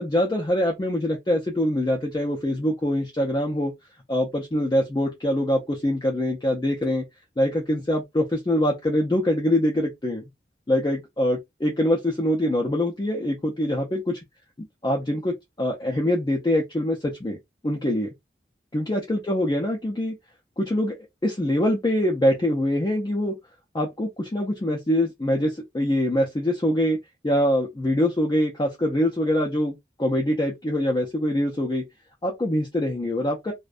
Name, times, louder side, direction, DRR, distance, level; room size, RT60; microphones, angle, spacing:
voice 1, 0.0-3.7 4.1-7.0 7.4-10.2 10.7-14.2 14.8-17.4 17.6-18.1 18.7-20.1 20.6-21.0 21.2-23.4 23.7-27.0 27.2-31.8 32.2-33.5, left 1 dB, 20° left, 0.4 m, -24 dB
2.5 x 2.1 x 2.3 m
head